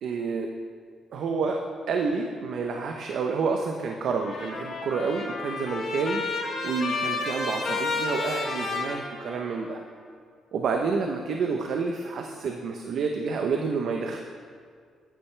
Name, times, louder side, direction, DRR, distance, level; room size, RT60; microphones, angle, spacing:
voice 1, 0.0-0.5 1.1-9.8 10.5-14.2, right 4 dB, 65° right, 2 dB, 0.8 m, -29 dB
Trumpet, 4.1-9.7, left 3 dB, 50° left, 2.8 m, -31 dB
14.5 x 10.0 x 3.4 m, 2.1 s
cardioid pair, 115°, 0 cm